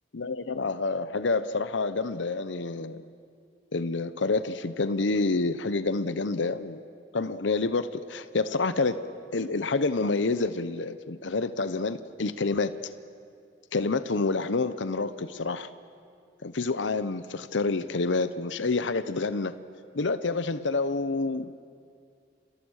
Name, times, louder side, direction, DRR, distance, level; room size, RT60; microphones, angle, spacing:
voice 1, 0.1-3.1 3.7-6.8 7.1-9.0 9.3-12.7 13.7-15.7 16.4-19.5 19.9-21.5, left 3 dB, 90° left, 13 dB, 0.8 m, -28 dB
30.0 x 26.0 x 6.5 m, 2.3 s
head